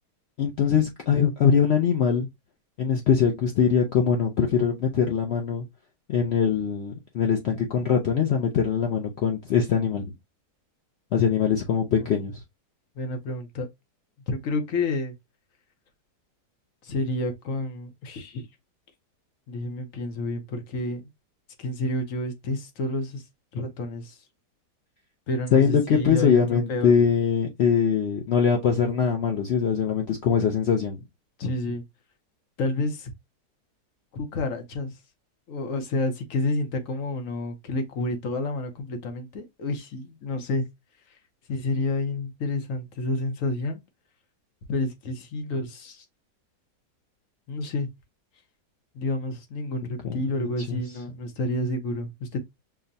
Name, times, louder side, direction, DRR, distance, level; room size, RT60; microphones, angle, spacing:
voice 1, 0.4-2.3 2.8-5.6 6.1-10.1 11.1-12.3 25.5-31.0 50.0-50.2 50.7-50.8, left 7 dB, 85° left, 0.5 m, -22 dB
voice 2, 13.0-13.7 14.3-15.1 16.8-18.5 19.5-21.1 21.6-23.2 23.5-24.2 25.3-26.9 31.4-31.8 32.6-33.1 34.1-35.0 35.5-40.6 41.5-43.8 44.7-46.0 47.5-47.9 48.9-52.4, left 2 dB, 60° left, 1.0 m, -29 dB
5.9 x 2.1 x 2.6 m
omnidirectional pair, 1.8 m